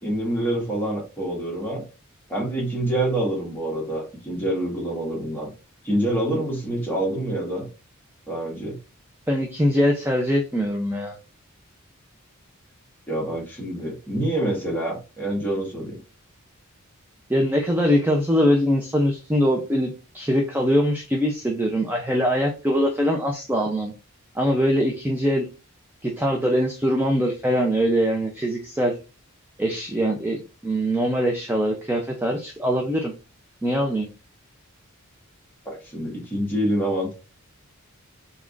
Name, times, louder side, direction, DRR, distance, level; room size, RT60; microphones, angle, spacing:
voice 1, 0.0-1.8 2.3-5.5 5.8-7.7 8.3-8.8 13.1-16.0 35.6-37.1, right 1 dB, 10° left, 1.6 m, -26 dB
voice 2, 9.3-11.2 17.3-23.9 24.3-25.5 26.0-29.0 29.6-33.1 33.6-34.1, equal, 10° right, 0.5 m, -22 dB
4.1 x 3.6 x 2.5 m
head